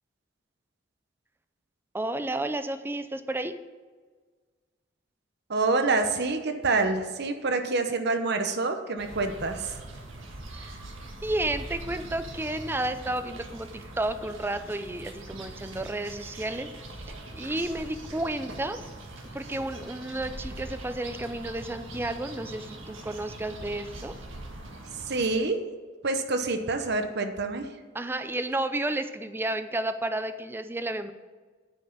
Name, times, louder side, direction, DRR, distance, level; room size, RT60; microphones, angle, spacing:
voice 1, 1.9-3.5 10.5-10.7 11.2-16.7 17.1-18.8 19.3-24.2 27.9-31.1, right 1 dB, 10° right, 10 dB, 0.5 m, -32 dB
voice 2, 5.5-9.8 25.1-25.7 26.0-27.6, right 3 dB, 60° right, 7 dB, 1.0 m, -27 dB
sound 1, 9.0-25.3, right 2 dB, 85° right, 1.7 m, -42 dB
9.4 x 5.5 x 7.2 m, 1.5 s
head